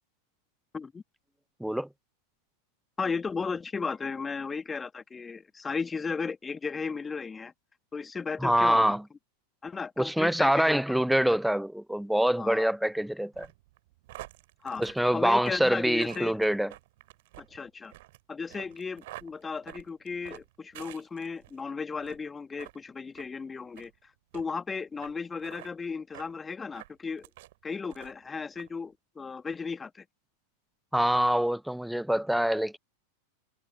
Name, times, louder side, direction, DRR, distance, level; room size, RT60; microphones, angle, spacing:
voice 1, 3.0-7.5 7.9-9.0 9.6-10.8 11.5-11.6 12.4-12.7 14.6-14.8 15.1-16.4 17.4-17.9 18.3-27.3 27.6-30.0, left 5 dB, 15° left, 2.0 m, -35 dB
voice 2, 8.4-9.0 10.0-13.5 14.8-16.7 30.9-32.8, equal, ahead, 0.7 m, -25 dB
sound 1, 13.3-21.6 22.0-22.3 22.6-22.8 23.1-23.3 23.7-23.9 24.3-24.4 25.0-25.1 25.4-25.7 26.1-26.3 26.7-27.5 27.9-28.3 28.6-28.7, right 18 dB, 50° right, 3.2 m, -48 dB
figure-of-eight pair, 90°, 0 cm